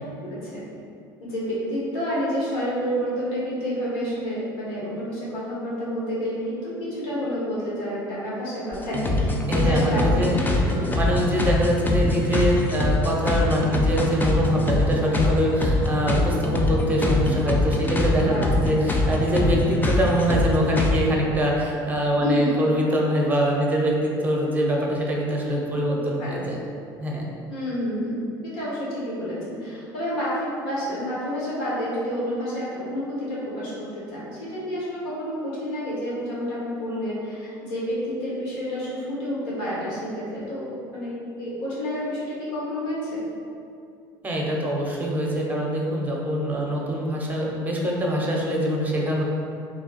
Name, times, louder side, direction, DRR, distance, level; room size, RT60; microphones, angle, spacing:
voice 1, 0.2-0.6 1.2-10.2 10.6-10.7 18.3-18.5 22.2-22.5 26.2-26.4 27.5-43.2, equal, 75° left, -8 dB, 1.4 m, -29 dB
sound 1, 8.7-20.9, left 2 dB, 15° left, 0.5 m, -23 dB
voice 2, 9.5-10.4 10.7-26.6 27.0-27.3 44.2-49.2, equal, 15° right, -2 dB, 0.8 m, -24 dB
3.2 x 2.3 x 4.0 m, 2.6 s
supercardioid pair, 85°, 11 cm